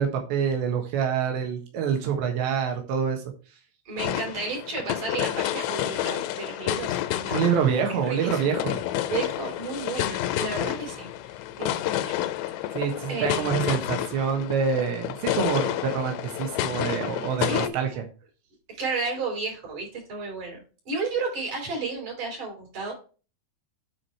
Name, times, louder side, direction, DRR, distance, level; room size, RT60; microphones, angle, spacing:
voice 1, 0.0-3.2 7.3-8.8 12.7-18.0, right 7 dB, 80° right, 3 dB, 3.6 m, -26 dB
voice 2, 3.9-7.6 7.9-8.7 9.1-12.3 12.7-12.8 13.1-13.8 17.4-17.8 18.7-22.9, right 3 dB, 45° right, -1 dB, 5.5 m, -33 dB
sound 1, 4.0-17.7, left 13 dB, 80° left, 2.8 m, -30 dB
9.8 x 4.8 x 4.5 m, 0.35 s
omnidirectional pair, 5.1 m